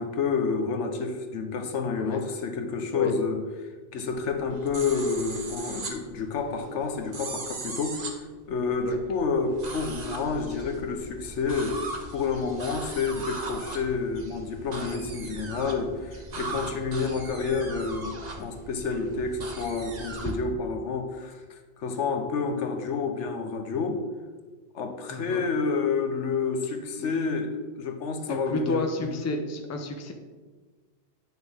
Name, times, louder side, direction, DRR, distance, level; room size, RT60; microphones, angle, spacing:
voice 1, 0.0-24.0 24.7-29.3, left 4 dB, 80° left, 6 dB, 1.1 m, -29 dB
sound 1, 4.1-20.4, right 3 dB, 40° right, 0.9 m, -39 dB
voice 2, 25.1-25.5 27.0-27.1 28.3-30.1, left 2 dB, 20° left, 4 dB, 0.5 m, -31 dB
8.9 x 6.1 x 3.5 m, 1.4 s
omnidirectional pair, 1.2 m